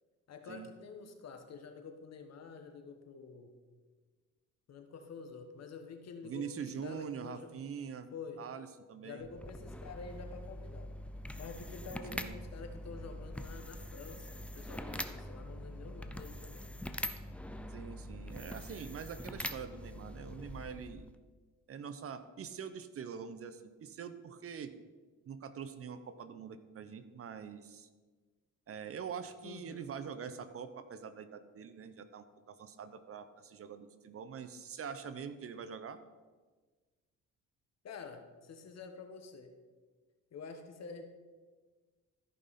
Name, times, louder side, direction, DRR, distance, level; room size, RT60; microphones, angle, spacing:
voice 1, 0.3-3.6 4.7-7.5 8.1-8.5 9.0-10.9 11.4-16.7 29.4-29.9 37.8-39.5 40.3-41.0, left 5 dB, 60° left, 6 dB, 1.3 m, -48 dB
voice 2, 6.2-8.1 8.4-9.3 12.1-12.3 17.7-21.1 21.7-24.7 25.3-27.9 28.7-36.0, right 7 dB, 50° right, 11 dB, 0.7 m, -44 dB
sound 1, 9.2-21.2, left 1 dB, 5° left, 0.5 m, -44 dB
13.5 x 5.5 x 4.2 m, 1.4 s
cardioid pair, 90°, 30 cm